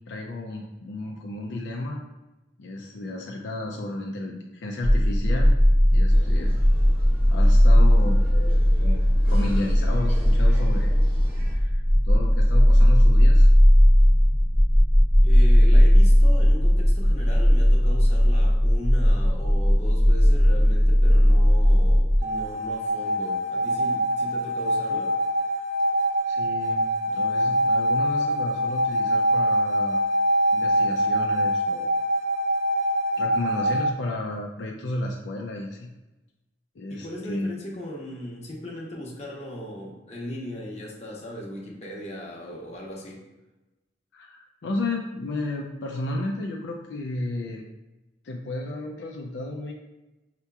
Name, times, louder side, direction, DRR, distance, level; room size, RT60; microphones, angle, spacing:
voice 1, 0.1-2.0 2.6-5.6 5.9-6.6 7.3-8.5 8.8-10.9 11.5-13.5 26.3-30.0 30.5-31.9 33.2-35.9 36.8-37.5 44.1-47.6 48.2-49.7, left 2 dB, 75° left, 0 dB, 0.4 m, -33 dB
sound 1, 4.8-22.2, equal, 20° right, 0.9 m, -17 dB
sound 2, 6.1-11.5, equal, 60° right, 1.2 m, -36 dB
voice 2, 15.2-25.1 36.9-43.2, equal, 40° left, -2 dB, 0.9 m, -37 dB
sound 3, 22.2-33.9, right 1 dB, 45° right, 0.4 m, -24 dB
5.7 x 2.8 x 2.3 m, 1.0 s
head